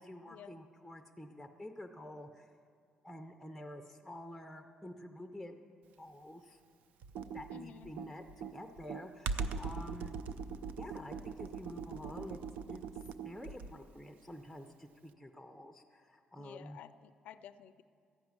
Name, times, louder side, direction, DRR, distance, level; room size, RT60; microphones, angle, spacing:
voice 1, 0.0-2.5 3.0-5.6 6.0-6.6 7.3-10.2 10.8-12.4 12.7-12.8 13.2-16.8, left 1 dB, ahead, 6 dB, 0.6 m, -49 dB
Computer keyboard, 7.0-13.9, right 5 dB, 85° right, 0.5 m, -41 dB
voice 2, 7.5-7.9 16.4-17.8, left 9 dB, 75° left, 11 dB, 0.4 m, -52 dB
13.5 x 6.0 x 9.5 m, 2.3 s
cardioid pair, 100°, 2 cm